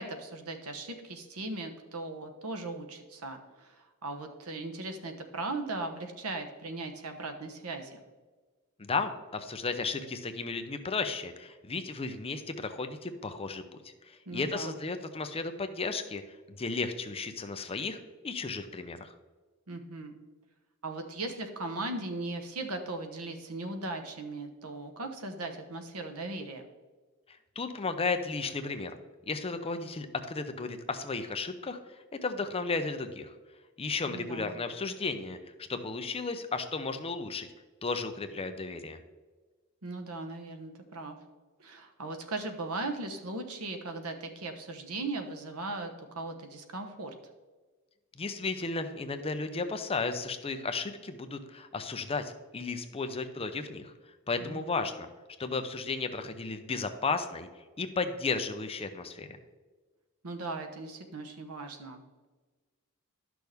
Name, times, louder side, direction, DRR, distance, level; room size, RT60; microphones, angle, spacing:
voice 1, 0.0-8.0 14.3-14.7 19.7-20.2 20.8-26.7 34.1-34.5 39.8-41.2 41.6-47.1 54.4-54.9 60.2-62.3, right 2 dB, 75° right, 5 dB, 1.1 m, -38 dB
voice 2, 8.8-16.2 16.6-18.0 18.2-19.1 27.3-29.0 29.3-33.3 33.8-35.4 35.7-37.5 37.8-39.0 48.2-53.9 54.3-55.1 55.4-57.5 57.8-59.4, left 4 dB, 25° left, 7 dB, 0.6 m, -34 dB
11.5 x 6.2 x 3.5 m, 1.3 s
head